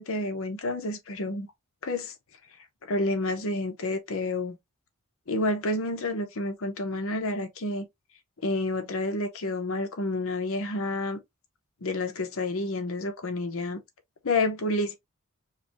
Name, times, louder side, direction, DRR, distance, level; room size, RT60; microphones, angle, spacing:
voice 1, 0.0-1.5 1.8-2.1 2.8-4.6 5.3-7.8 8.4-11.2 11.8-13.8 14.2-14.9, left 2 dB, 65° left, 0.8 m, -29 dB
4.8 x 2.2 x 2.9 m
head